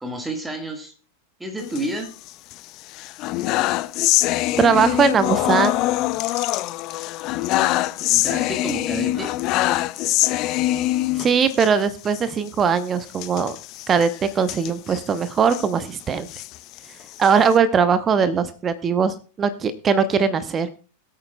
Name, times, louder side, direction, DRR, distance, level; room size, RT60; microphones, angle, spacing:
voice 1, 0.0-0.9 1.4-2.1 8.1-9.3, right 1 dB, 5° right, 4 dB, 1.7 m, -30 dB
sound 1, 1.6-2.5 2.9-11.7 12.1-12.2 12.5-12.6 13.1-15.7 16.2-17.6, left 16 dB, 40° left, 0.4 m, -24 dB
voice 2, 4.6-5.7 11.2-13.6 13.9-14.1 14.3-16.3 17.2-20.7, right 6 dB, 25° right, 13 dB, 0.8 m, -20 dB
21.0 x 8.8 x 2.3 m, 0.36 s
figure-of-eight pair, 90°, 0 cm